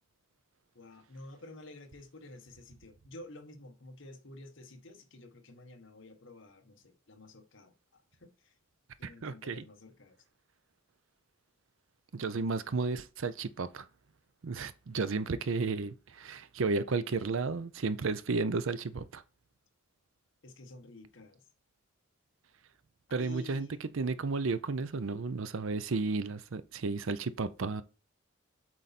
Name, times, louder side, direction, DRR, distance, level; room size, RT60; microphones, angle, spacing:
voice 1, 0.7-8.5 9.0-10.2 20.4-21.4 23.2-23.9, left 2 dB, 60° left, 1.2 m, -51 dB
voice 2, 9.0-9.6 12.1-13.9 14.4-19.2 23.1-23.7 23.9-27.8, right 4 dB, 65° right, 0.5 m, -33 dB
7.5 x 4.0 x 4.1 m
head